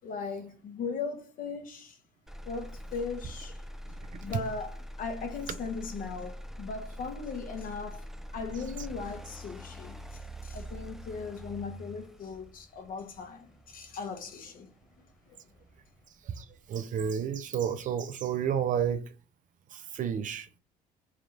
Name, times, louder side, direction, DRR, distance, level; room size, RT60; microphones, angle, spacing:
voice 1, 0.0-2.0 2.5-3.6 4.2-8.1 8.3-14.7, left 5 dB, 55° left, 1.0 m, -38 dB
Motor vehicle (road), 2.3-16.3 16.7-17.3, equal, ahead, 0.4 m, -44 dB
voice 2, 16.4-19.0 19.7-20.6, right 8 dB, 50° right, 0.6 m, -31 dB
3.5 x 2.4 x 4.5 m
supercardioid pair, 80°, 17 cm